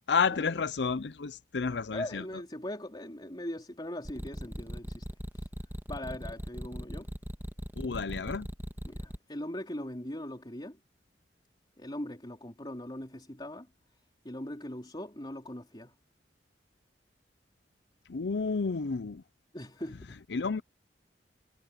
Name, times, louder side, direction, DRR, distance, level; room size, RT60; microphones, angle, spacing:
voice 1, 0.1-2.2 7.8-8.5 18.1-19.2 20.3-20.6, left 5 dB, 75° left, 0.6 m, -30 dB
voice 2, 1.9-5.1 5.4-5.5 5.9-7.1 8.9-10.8 11.8-13.7 14.2-15.9 19.5-20.2, left 1 dB, 25° left, 3.6 m, -40 dB
sound 1, 4.1-9.2, equal, 10° right, 1.8 m, -38 dB
head